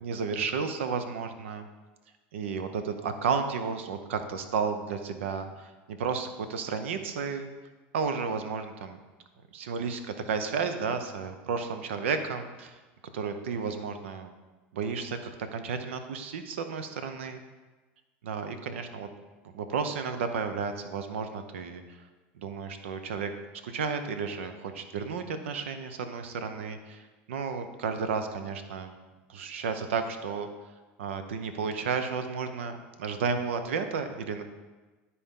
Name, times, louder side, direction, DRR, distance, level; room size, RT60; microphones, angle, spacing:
voice 1, 0.0-1.7 2.3-7.5 7.9-9.0 9.5-12.8 13.1-14.3 14.7-15.2 15.5-17.4 18.2-19.1 19.5-21.8 22.3-23.3 23.6-28.9 29.3-30.5 31.0-34.4, right 5 dB, 90° right, 8 dB, 0.7 m, -32 dB
12.0 x 4.2 x 3.7 m, 1.2 s
supercardioid pair, 100°, 6 cm